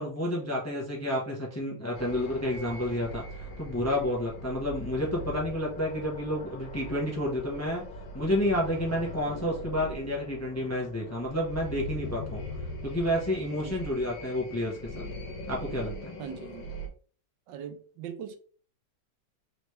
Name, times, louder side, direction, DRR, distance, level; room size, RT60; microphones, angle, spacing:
voice 1, 0.0-7.8 8.1-12.4 12.8-15.1 15.5-16.2, left 1 dB, 15° left, 0.6 m, -30 dB
sound 1, 1.9-16.9, left 1 dB, 85° left, 1.7 m, -41 dB
voice 2, 16.2-16.7 17.5-18.4, right 8 dB, 80° right, 1.3 m, -41 dB
4.0 x 3.2 x 3.2 m
omnidirectional pair, 2.0 m